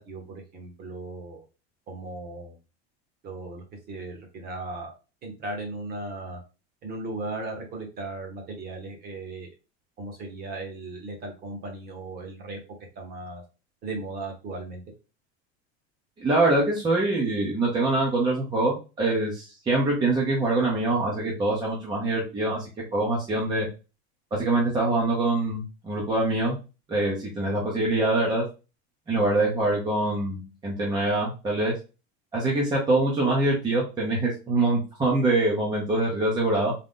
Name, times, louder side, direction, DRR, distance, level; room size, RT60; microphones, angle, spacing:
voice 1, 0.0-1.4 1.9-2.6 3.2-4.9 5.2-6.4 6.8-9.5 10.0-12.6 12.9-13.4 13.8-14.8, right 2 dB, 30° right, 2 dB, 1.2 m, -37 dB
voice 2, 16.2-22.6 22.9-23.7 24.3-26.6 26.9-28.5 29.1-31.7 32.3-36.7, right 2 dB, 15° right, -4 dB, 0.8 m, -24 dB
3.8 x 2.9 x 3.7 m, 0.31 s
supercardioid pair, 165°, 33 cm